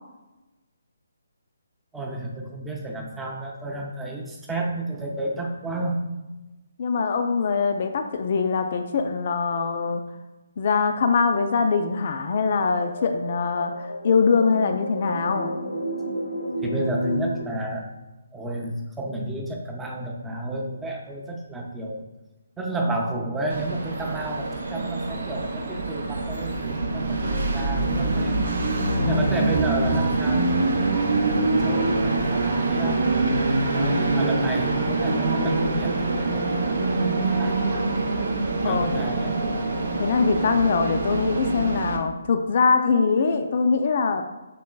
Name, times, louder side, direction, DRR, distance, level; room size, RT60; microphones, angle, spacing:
voice 1, 1.9-6.0 16.6-17.9 18.3-22.0 22.6-28.4 28.7-33.0 33.7-37.9 38.6-39.5, right 2 dB, 5° right, 0 dB, 0.5 m, -32 dB
voice 2, 6.8-10.0 10.6-15.6 28.8-29.3 38.6-39.2 40.0-44.2, left 5 dB, 40° left, 6 dB, 0.4 m, -23 dB
sound 1, 12.6-17.4, equal, 75° left, 0.8 m, -31 dB
Train, 23.5-42.0, right 2 dB, 50° right, 0.6 m, -24 dB
6.1 x 3.7 x 2.2 m, 1.1 s
figure-of-eight pair, 140°, 0 cm